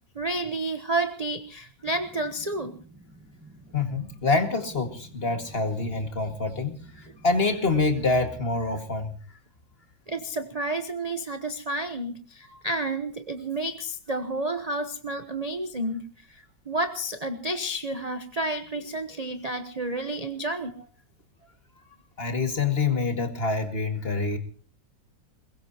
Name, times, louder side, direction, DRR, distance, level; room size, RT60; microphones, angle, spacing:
voice 1, 0.1-2.8 10.1-20.9, right 1 dB, 30° right, 9 dB, 0.8 m, -30 dB
sound 1, 1.8-9.1, right 2 dB, 5° right, 5.1 m, -52 dB
voice 2, 3.7-9.2 12.5-12.6 22.2-24.4, left 3 dB, 30° left, 6 dB, 2.1 m, -26 dB
22.0 x 21.0 x 2.9 m, 0.39 s
omnidirectional pair, 2.0 m